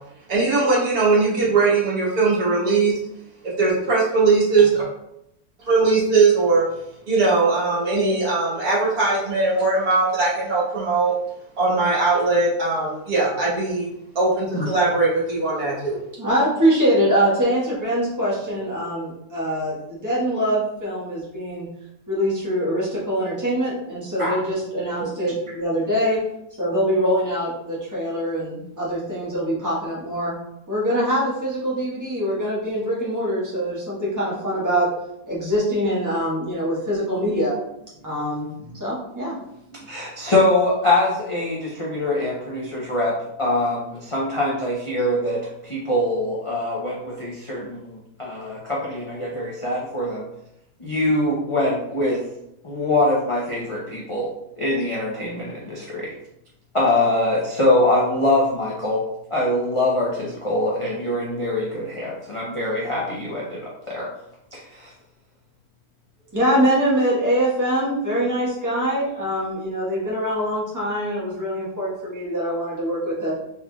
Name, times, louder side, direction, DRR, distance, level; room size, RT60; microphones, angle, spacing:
voice 1, 0.3-3.0 3.4-4.9 5.7-6.7 7.1-11.2 11.6-13.9 14.2-16.0, right 3 dB, 70° right, -7 dB, 1.9 m, -20 dB
voice 2, 16.2-21.6 22.1-26.2 26.6-30.3 30.7-34.9 35.3-37.5 38.0-39.4 66.3-73.3, equal, 10° right, -7 dB, 1.2 m, -23 dB
voice 3, 39.9-50.3 50.8-52.2 52.6-54.3 54.6-56.1 56.7-59.0 59.3-64.1 64.5-64.9, left 1 dB, 45° left, -6 dB, 0.4 m, -23 dB
4.2 x 3.6 x 2.3 m, 0.82 s
omnidirectional pair, 1.7 m